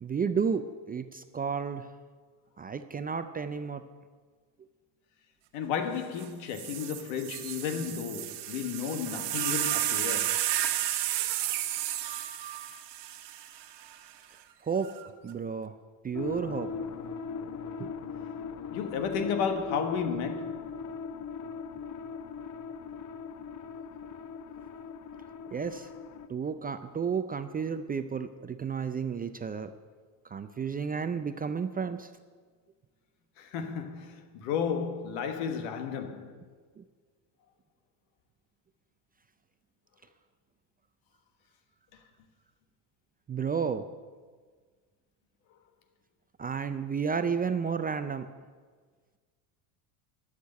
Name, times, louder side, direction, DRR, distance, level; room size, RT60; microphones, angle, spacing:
voice 1, 0.0-1.9 2.6-3.9 14.6-14.9 15.2-15.8 16.0-16.7 17.8-17.9 25.5-25.9 26.3-29.7 30.3-32.1 36.8-36.9 43.3-43.9 46.4-48.3, right 6 dB, 20° right, 0.4 m, -32 dB
voice 2, 5.5-10.5 18.7-20.7 33.4-36.3, left 7 dB, 75° left, 1.5 m, -33 dB
sound 1, 6.2-6.3 6.5-13.9 14.8-15.3, right 13 dB, 55° right, 1.2 m, -32 dB
sound 2, 16.1-26.3, left 5 dB, 40° left, 0.7 m, -39 dB
11.5 x 6.6 x 8.9 m
supercardioid pair, 100°, 49 cm